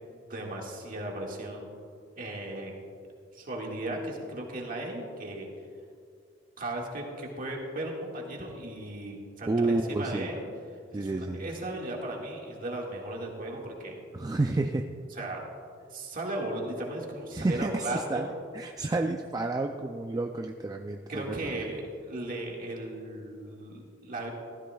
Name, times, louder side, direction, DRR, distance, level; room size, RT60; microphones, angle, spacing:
voice 1, 0.1-1.7 2.2-2.8 3.3-5.5 6.6-10.4 10.9-14.1 15.1-15.5 15.9-18.3 21.1-24.3, right 1 dB, 50° right, -1 dB, 1.8 m, -36 dB
voice 2, 9.5-10.3 10.9-11.5 14.1-14.9 17.3-18.3 18.5-21.5, right 2 dB, 20° right, 4 dB, 0.3 m, -30 dB
15.5 x 13.5 x 2.3 m, 2.3 s
head